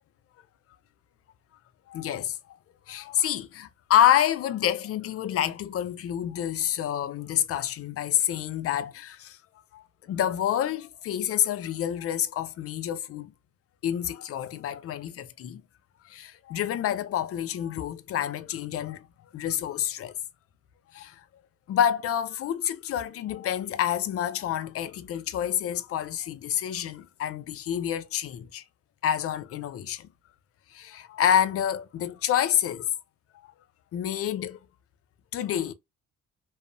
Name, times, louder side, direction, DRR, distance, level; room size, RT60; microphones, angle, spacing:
voice 1, 1.9-2.6 2.9-9.4 9.7-13.3 13.8-15.6 16.0-19.1 19.3-20.2 20.9-21.2 21.7-28.6 29.0-30.1 30.7-32.9 33.9-34.6 35.3-35.7, left 10 dB, 50° left, 0.4 m, -28 dB
2.6 x 2.0 x 2.5 m
cardioid pair, 90°, 30 cm